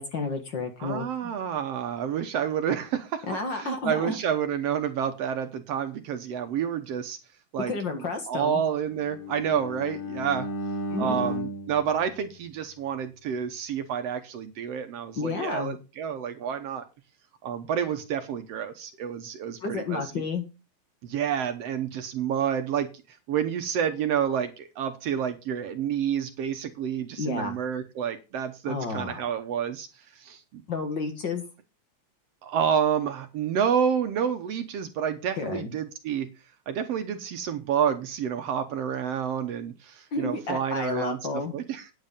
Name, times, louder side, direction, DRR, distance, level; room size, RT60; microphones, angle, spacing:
voice 1, 0.0-1.3 3.3-4.2 7.7-8.6 10.9-11.3 15.2-15.8 19.6-20.4 27.2-27.6 28.7-29.3 30.7-31.4 35.4-35.7 40.1-41.5, left 4 dB, 45° left, 5 dB, 1.9 m, -31 dB
voice 2, 0.8-3.3 3.5-7.2 7.5-10.5 11.0-16.8 17.4-20.0 21.0-30.6 32.4-36.3 36.7-41.2 41.5-41.9, right 8 dB, 70° right, 8 dB, 1.8 m, -29 dB
Bowed string instrument, 8.9-13.0, left 1 dB, 60° left, 0.5 m, -35 dB
9.8 x 7.9 x 5.2 m, 0.29 s
omnidirectional pair, 3.3 m